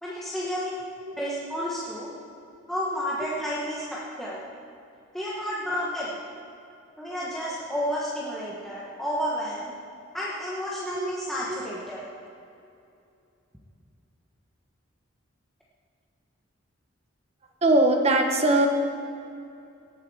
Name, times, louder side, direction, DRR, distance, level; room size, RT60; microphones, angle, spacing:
voice 1, 0.0-0.7 1.2-2.1 2.7-4.4 5.1-6.1 7.0-9.7 10.1-12.0, equal, ahead, -7 dB, 1.2 m, -31 dB
voice 2, 17.6-18.7, right 2 dB, 30° right, 3 dB, 1.1 m, -21 dB
18.0 x 7.7 x 4.8 m, 2.6 s
head